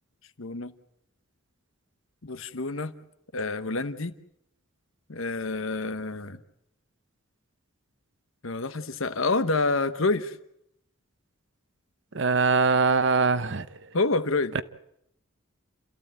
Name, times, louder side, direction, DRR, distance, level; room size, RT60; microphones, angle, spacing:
voice 1, 0.4-0.7 2.2-2.9 3.3-4.1 5.1-6.4 8.4-10.4 13.9-14.6, left 3 dB, 70° left, 1.1 m, -28 dB
voice 2, 12.1-13.7 14.5-14.6, right 4 dB, 55° right, 0.8 m, -22 dB
29.0 x 14.5 x 9.0 m
head